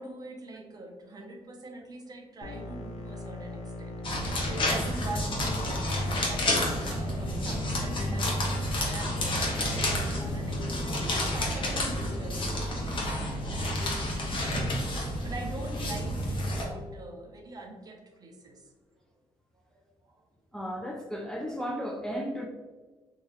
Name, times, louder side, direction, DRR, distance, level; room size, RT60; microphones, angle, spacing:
voice 1, 0.0-8.3 8.7-14.8 15.2-18.7 19.7-19.8 20.1-20.2, right 2 dB, 35° right, 1 dB, 0.7 m, -43 dB
sound 1, 2.4-12.4, left 1 dB, 85° left, 0.6 m, -41 dB
sound 2, 4.0-16.6, left 1 dB, 50° left, 1.0 m, -30 dB
voice 2, 20.5-22.5, equal, 5° left, 1 dB, 0.3 m, -34 dB
3.6 x 2.7 x 3.0 m, 1.3 s
cardioid pair, 120°, 11 cm